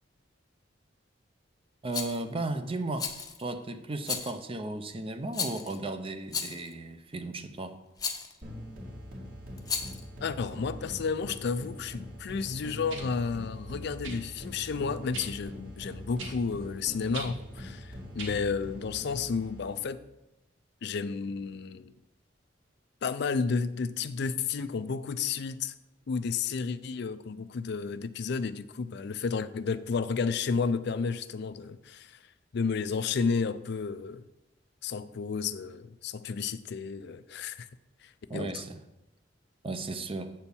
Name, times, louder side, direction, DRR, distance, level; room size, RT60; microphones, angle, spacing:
voice 1, 1.8-3.1 3.4-7.8 38.3-38.8 39.6-40.3, right 2 dB, 30° right, 0.6 m, -35 dB
Rattle, 1.9-2.2 3.0-3.4 4.0-4.4 5.3-5.8 6.3-6.7 8.0-8.3 9.6-10.0, left 5 dB, 20° left, 0.7 m, -34 dB
sound 1, 8.4-19.9, equal, 50° right, 2.2 m, -43 dB
voice 2, 10.2-20.0 20.8-21.9 23.0-25.7 26.1-32.2 32.5-34.2 34.8-37.7 38.0-38.5, left 5 dB, 60° left, 0.4 m, -32 dB
sound 2, 11.8-11.9 12.9-13.1 14.0-14.2 15.1-15.3 16.2-16.4 17.1-17.3 18.2-18.3 19.3-19.4, right 4 dB, 85° right, 1.4 m, -40 dB
7.9 x 4.4 x 6.9 m
head